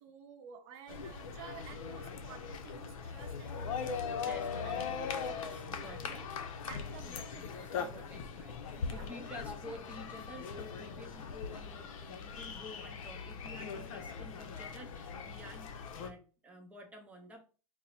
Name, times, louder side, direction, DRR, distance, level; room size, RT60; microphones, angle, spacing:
voice 1, 0.0-4.2 4.6-5.5 5.9-6.2 6.6-8.1 8.7-9.1, right 8 dB, 45° right, 0.6 m, -53 dB
sound 1, 0.9-16.1, left 6 dB, 70° left, 0.6 m, -40 dB
voice 2, 4.2-6.3 7.3-17.4, equal, 5° right, 0.6 m, -51 dB
4.1 x 2.0 x 4.0 m
supercardioid pair, 150°, 18 cm